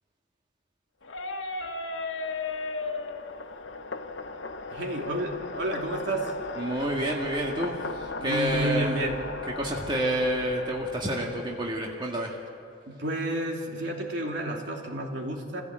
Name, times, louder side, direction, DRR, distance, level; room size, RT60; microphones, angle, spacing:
sound 1, 1.0-6.6, left 3 dB, 85° left, 1.4 m, -37 dB
sound 2, 1.5-12.2, left 3 dB, 65° left, 1.0 m, -38 dB
voice 1, 4.7-6.3 8.2-9.2 12.9-15.6, right 1 dB, 65° right, 1 dB, 2.8 m, -30 dB
voice 2, 6.6-9.0 9.6-12.4, right 1 dB, 25° right, -1 dB, 1.9 m, -29 dB
27.0 x 15.5 x 7.7 m, 2.5 s
head